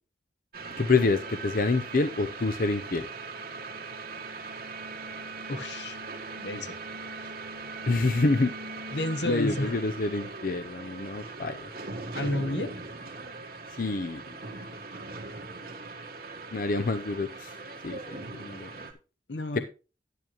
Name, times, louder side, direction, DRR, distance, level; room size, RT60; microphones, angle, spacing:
sound 1, 0.5-18.9, right 3 dB, 60° right, 1.5 m, -40 dB
voice 1, 0.8-3.1 7.9-8.5 9.3-11.6 13.8-14.2 16.5-17.5 17.8-18.0 18.4-18.7 19.5-19.6, left 3 dB, 55° left, 9 dB, 0.6 m, -27 dB
voice 2, 5.5-6.0 6.4-6.7 8.9-9.8 12.1-12.7 19.3-19.6, left 1 dB, 85° left, 8 dB, 1.3 m, -31 dB
10.5 x 9.6 x 3.0 m, 0.33 s
head